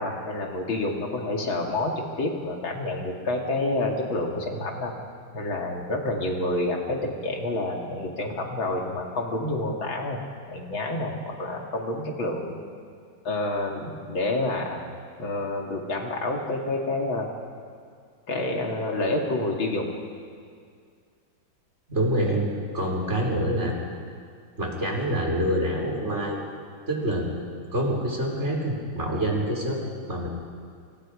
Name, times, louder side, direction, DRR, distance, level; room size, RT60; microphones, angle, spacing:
voice 1, 0.0-4.9 5.3-10.2 10.5-12.6 13.2-14.8 15.2-17.3 18.3-19.9, left 2 dB, 75° left, 1 dB, 3.2 m, -28 dB
voice 2, 21.9-22.5 22.7-23.9 24.6-26.4 26.9-27.3 27.7-29.8 30.1-30.3, right 1 dB, 30° right, -2 dB, 4.9 m, -26 dB
29.0 x 27.0 x 5.1 m, 2.2 s
omnidirectional pair, 2.2 m